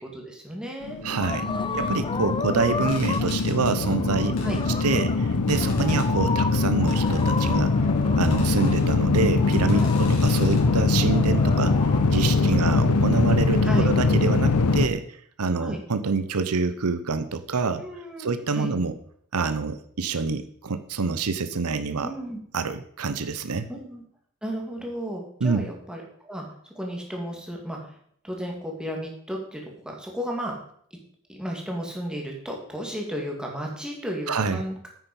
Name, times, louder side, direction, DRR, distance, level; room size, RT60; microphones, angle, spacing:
voice 1, 0.0-1.0 1.4-2.6 4.4-4.6 9.7-9.9 12.3-12.7 13.6-13.9 15.6-15.8 17.8-18.7 22.0-22.4 23.7-24.0 24.4-26.5 26.7-27.9 28.2-30.6 31.3-34.9, equal, 5° right, 0 dB, 2.5 m, -34 dB
sound 1, 0.8-14.9, left 3 dB, 85° left, 0.8 m, -22 dB
voice 2, 1.0-1.5 1.7-4.4 4.8-7.7 8.2-11.8 12.1-15.0 15.4-17.8 18.2-19.0 19.3-22.1 22.5-23.7 25.4-25.6 34.3-34.6, right 4 dB, 80° right, 11 dB, 0.8 m, -26 dB
sound 2, 1.2-12.1, left 4 dB, 20° left, 0.5 m, -34 dB
sound 3, 2.9-3.7 4.4-4.9 5.5-6.1 6.9-7.5 8.2-8.9 9.5-10.6, left 4 dB, 65° left, 4.1 m, -44 dB
9.4 x 9.0 x 5.5 m, 0.64 s
head